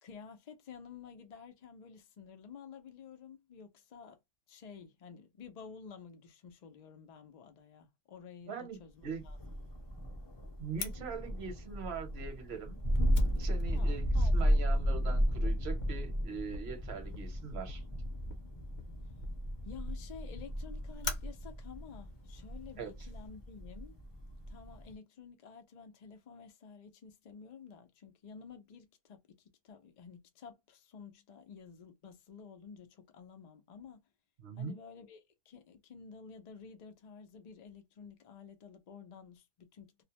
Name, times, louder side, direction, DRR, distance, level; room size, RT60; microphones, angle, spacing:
voice 1, 0.0-4.2 4.5-9.6 13.7-14.6 14.9-15.2 19.6-23.9 24.5-34.0 34.6-35.2 35.5-40.0, left 6 dB, 75° left, 0.3 m, -52 dB
voice 2, 8.5-9.2 10.6-12.8 13.4-17.8 22.8-22.9 34.4-34.8, right 5 dB, 55° right, 1.0 m, -42 dB
Thunder, 9.2-24.9, equal, 25° left, 0.6 m, -34 dB
Fire, 10.8-23.3, left 3 dB, 60° left, 0.8 m, -47 dB
2.5 x 2.0 x 2.8 m
omnidirectional pair, 1.5 m